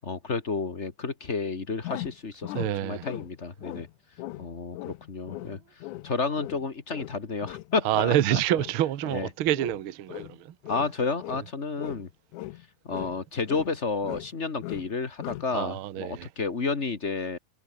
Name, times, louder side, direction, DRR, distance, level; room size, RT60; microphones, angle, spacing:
voice 1, 0.0-3.9 4.4-5.6 6.0-8.4 9.1-9.3 10.7-12.1 12.8-17.4, left 4 dB, 35° left, 1.1 m, -31 dB
sound 1, 1.8-3.3 3.6-3.9 4.2-4.5 4.7-10.4 10.6-11.5 11.8-13.2 13.5-14.3 14.6-14.9 15.2-15.5, left 17 dB, 75° left, 1.9 m, -39 dB
voice 2, 2.5-3.1 7.8-10.5 15.5-16.3, right 12 dB, 90° right, 1.1 m, -27 dB
omnidirectional pair, 4.1 m